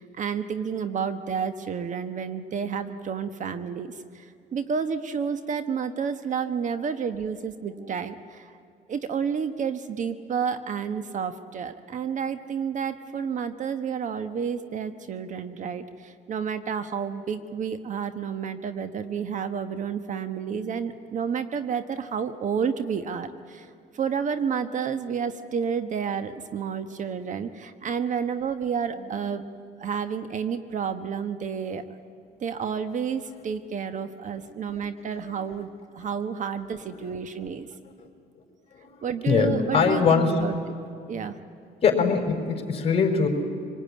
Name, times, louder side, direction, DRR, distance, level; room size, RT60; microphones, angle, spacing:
voice 1, 0.0-4.3 4.5-8.5 8.9-23.7 23.9-29.4 29.8-31.8 32.4-35.7 35.9-37.7 39.0-40.5 41.1-41.4, right 6 dB, 50° right, 11 dB, 1.2 m, -30 dB
voice 2, 38.9-40.3 41.8-43.3, left 5 dB, 35° left, 3 dB, 4.3 m, -22 dB
25.5 x 19.5 x 9.6 m, 2.5 s
cardioid pair, 110°, 17 cm